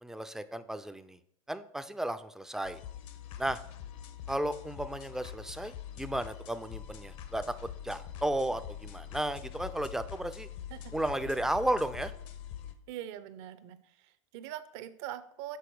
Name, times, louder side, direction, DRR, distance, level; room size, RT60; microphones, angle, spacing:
voice 1, 0.0-1.2 1.5-2.8 3.4-3.6 4.3-10.5 10.9-12.1, right 1 dB, 5° right, 11 dB, 0.3 m, -34 dB
sound 1, 2.6-12.7, left 10 dB, 60° left, 0.8 m, -44 dB
voice 2, 12.9-15.6, right 11 dB, 60° right, 13 dB, 0.6 m, -43 dB
7.0 x 4.1 x 4.6 m, 0.69 s
hypercardioid pair, 100°, 17 cm